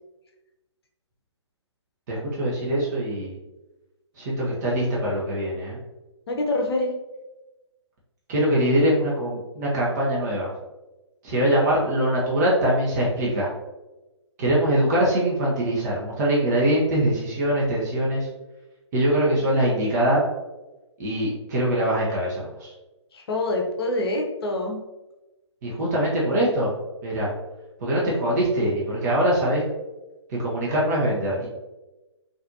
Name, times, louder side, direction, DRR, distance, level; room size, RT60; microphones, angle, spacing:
voice 1, 2.1-3.3 4.2-5.8 8.3-10.5 11.2-13.5 14.4-18.3 18.9-20.2 21.0-22.7 25.6-26.7 27.0-27.3 27.8-29.6 30.3-31.5, right 1 dB, 35° right, -5 dB, 0.9 m, -23 dB
voice 2, 6.3-6.9 23.1-24.8, left 2 dB, 55° left, 2 dB, 0.7 m, -25 dB
4.0 x 2.6 x 2.7 m, 1.1 s
figure-of-eight pair, 135°, 15 cm